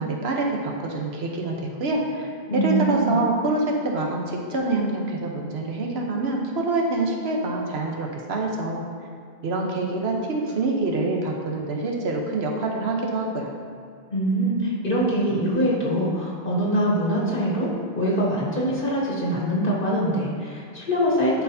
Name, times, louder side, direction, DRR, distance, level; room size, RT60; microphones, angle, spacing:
voice 1, 0.0-8.8 9.4-13.5, right 2 dB, 85° right, -1 dB, 1.2 m, -26 dB
voice 2, 2.5-3.2 14.1-21.4, right 1 dB, 60° left, -5 dB, 1.5 m, -23 dB
12.0 x 4.7 x 2.7 m, 2.3 s
omnidirectional pair, 1.0 m